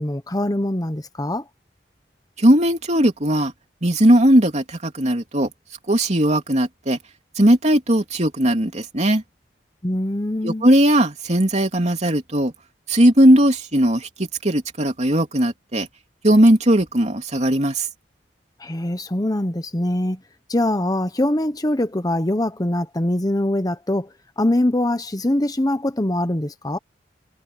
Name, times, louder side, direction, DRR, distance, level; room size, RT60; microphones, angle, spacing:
voice 1, 0.0-1.4 9.8-10.7 18.6-20.2 20.5-24.1 24.4-26.8, left 1 dB, 20° left, 1.0 m, -23 dB
voice 2, 2.4-3.5 3.8-5.5 5.9-7.0 7.4-9.2 10.4-12.5 12.9-14.1 14.4-15.9 16.2-17.9, right 1 dB, 40° right, 3.1 m, -18 dB
head